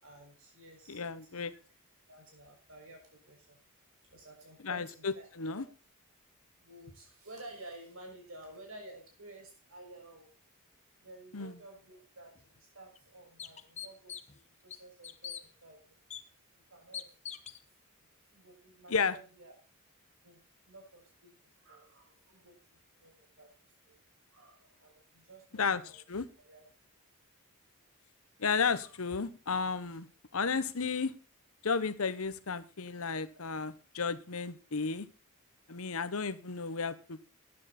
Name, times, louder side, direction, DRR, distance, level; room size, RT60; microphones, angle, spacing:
voice 1, 0.0-1.0 1.3-1.4 2.1-3.6 4.1-5.3 5.5-5.6 6.6-10.3 11.0-16.0 16.7-17.4 18.3-19.5 20.2-23.5 23.8-24.0 24.3-26.0 26.4-26.6 28.8-28.9, right 2 dB, 65° right, 1 dB, 6.3 m, -53 dB
voice 2, 0.9-1.5 4.6-5.7 11.3-11.6 18.9-19.2 25.5-26.3 28.4-30.1 30.3-31.1 31.6-35.1 35.7-37.2, left 5 dB, 75° left, 14 dB, 1.0 m, -33 dB
sound 1, 12.3-12.4 13.0-13.1 13.4-14.4 14.7-15.4 16.1-16.2 16.9-17.6, left 9 dB, 30° left, 0.9 m, -43 dB
13.5 x 9.9 x 4.3 m, 0.34 s
head